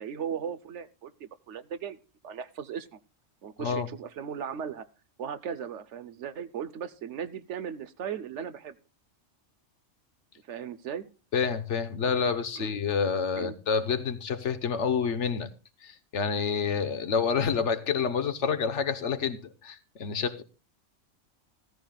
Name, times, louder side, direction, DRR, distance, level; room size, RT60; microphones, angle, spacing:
voice 1, 0.0-3.0 3.4-4.9 5.2-8.7 10.5-11.1 12.1-12.2 12.6-12.7 13.4-13.5, right 8 dB, 70° right, 1.1 m, -37 dB
voice 2, 11.3-15.5 15.8-20.4, left 6 dB, 70° left, 1.3 m, -28 dB
15.5 x 14.0 x 2.3 m
omnidirectional pair, 1.3 m